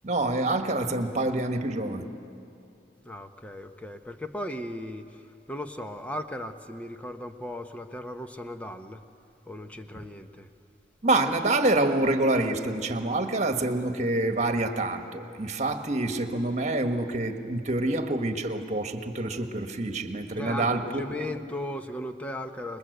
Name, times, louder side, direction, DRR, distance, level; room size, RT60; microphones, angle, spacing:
voice 1, 0.0-2.1 11.0-21.0, right 2 dB, 40° right, 7 dB, 1.5 m, -27 dB
voice 2, 3.0-9.0 9.5-10.5 20.4-22.8, left 1 dB, 10° left, 7 dB, 1.0 m, -37 dB
27.5 x 21.5 x 8.1 m, 2.7 s
head